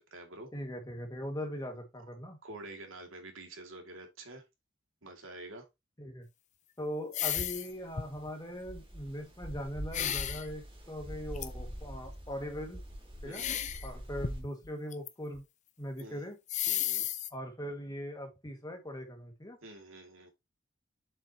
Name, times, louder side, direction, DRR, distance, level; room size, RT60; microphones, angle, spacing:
voice 1, 0.0-0.5 2.4-4.4 5.0-5.7 13.2-13.6 16.0-16.2 16.7-17.1 19.6-20.3, right 2 dB, 85° right, 2.3 m, -48 dB
voice 2, 0.5-2.4 6.0-6.3 6.8-12.8 13.2-13.5 13.8-15.4 15.8-16.4 17.3-19.6, equal, 20° left, 1.9 m, -40 dB
sound 1, 7.1-7.7 8.0-8.3 9.9-10.5 11.4-11.5 13.3-13.9 14.2-15.1 15.3-15.4 16.0-16.1 16.5-17.3, left 10 dB, 35° left, 0.6 m, -33 dB
sound 2, 7.5-14.4, equal, 25° right, 1.9 m, -44 dB
7.5 x 5.9 x 2.9 m
head